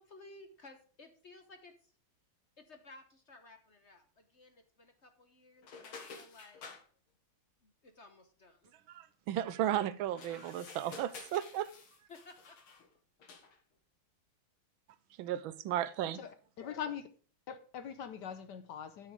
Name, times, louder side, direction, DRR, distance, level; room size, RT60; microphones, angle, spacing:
voice 1, 0.0-1.9 2.6-6.7 7.6-8.7 12.1-12.6, left 2 dB, 45° left, 1.0 m, -56 dB
sound 1, 5.6-6.8 10.1-12.9 13.2-13.6, left 5 dB, 80° left, 2.5 m, -51 dB
voice 2, 8.9-11.7 15.2-16.2, right 12 dB, 80° right, 1.4 m, -34 dB
voice 3, 16.1-17.1 17.5-19.1, left 8 dB, 65° left, 1.2 m, -42 dB
12.0 x 6.5 x 4.8 m
omnidirectional pair, 2.3 m